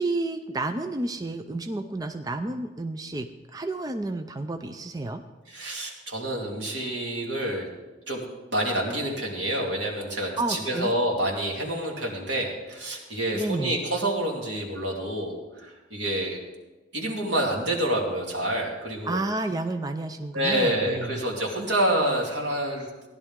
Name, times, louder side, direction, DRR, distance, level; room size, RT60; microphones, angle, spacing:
voice 1, 0.0-3.3 3.5-5.2 10.4-10.9 13.3-13.7 19.1-21.1, right 2 dB, 20° right, 7 dB, 0.4 m, -30 dB
voice 2, 5.5-7.7 8.1-8.2 8.5-16.4 16.9-19.2 20.3-22.9, right 1 dB, 85° right, -2 dB, 2.7 m, -28 dB
16.5 x 11.0 x 3.6 m, 1.2 s
head